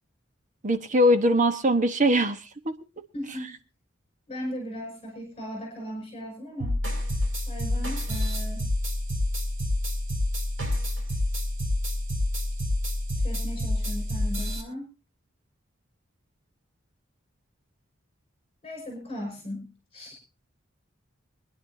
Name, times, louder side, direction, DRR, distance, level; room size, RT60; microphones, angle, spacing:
voice 1, 0.6-2.4 2.6-2.7, equal, 40° right, 8 dB, 1.2 m, -21 dB
voice 2, 3.1-3.5 4.3-6.8 7.5-8.7 13.2-14.9 18.6-20.2, equal, 30° left, 1 dB, 5.7 m, -37 dB
sound 1, 6.6-14.6, left 1 dB, 85° right, 5.6 m, -28 dB
25.0 x 10.5 x 2.7 m, 0.30 s
head